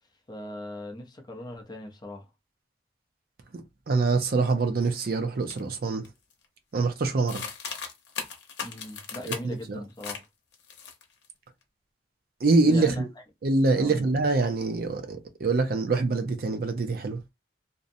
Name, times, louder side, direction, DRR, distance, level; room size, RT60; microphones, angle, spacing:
voice 1, 0.3-2.3 8.6-10.3 12.7-13.1 13.7-14.1, left 1 dB, 25° left, 0.5 m, -39 dB
voice 2, 3.5-6.0 6.7-7.4 9.3-9.4 9.7-9.8 12.4-13.1 13.4-17.2, right 3 dB, 55° right, 0.5 m, -25 dB
sound 1, 5.5-5.6 6.0-6.5 7.3-9.6 10.0-10.3 10.5-11.3, left 6 dB, 80° left, 0.7 m, -37 dB
2.6 x 2.0 x 2.6 m
head